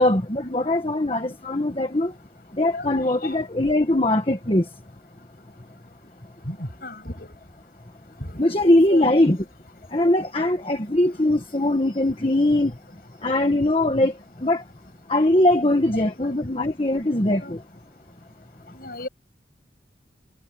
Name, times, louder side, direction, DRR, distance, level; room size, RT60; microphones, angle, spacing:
voice 1, 0.0-2.1 2.6-4.6 8.4-9.4 9.9-12.7 13.2-14.1 14.4-14.6 15.1-17.6, left 1 dB, 30° left, 1.4 m, -21 dB
voice 2, 6.5-7.3 8.2-8.4 8.9-9.1 16.2-16.3 17.4-17.5 18.8-19.1, left 1 dB, 55° left, 7.2 m, -34 dB
head